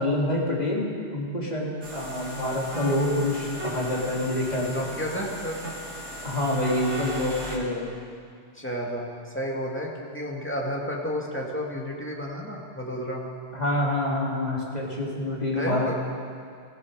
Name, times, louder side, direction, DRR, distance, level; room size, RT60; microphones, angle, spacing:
voice 1, 0.0-4.7 6.2-7.9 13.5-15.9, left 1 dB, 35° left, -4 dB, 2.9 m, -27 dB
sound 1, 1.8-7.6, right 1 dB, 75° right, 2.3 m, -36 dB
voice 2, 4.7-5.6 8.5-13.3 15.5-16.0, equal, 10° left, -2 dB, 2.0 m, -31 dB
18.5 x 15.0 x 4.8 m, 2.3 s
omnidirectional pair, 1.2 m